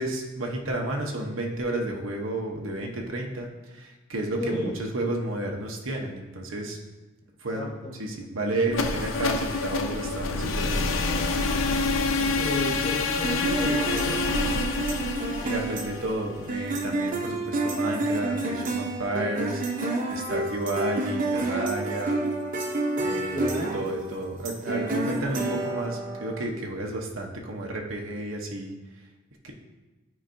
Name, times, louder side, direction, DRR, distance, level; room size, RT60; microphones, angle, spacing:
voice 1, 0.0-6.8 7.4-7.7 8.0-11.0 15.4-19.6 20.1-22.4 23.0-28.7 29.4-29.5, right 2 dB, 85° right, 1 dB, 0.9 m, -31 dB
voice 2, 4.4-4.8 7.5-7.9 12.3-14.5 23.1-23.7, left 1 dB, 20° left, -8 dB, 1.2 m, -33 dB
sound 1, 8.7-16.6, left 3 dB, 90° left, 0.6 m, -27 dB
sound 2, 13.2-26.4, right 2 dB, 40° right, 0.7 m, -29 dB
9.4 x 4.6 x 2.6 m, 1.2 s
head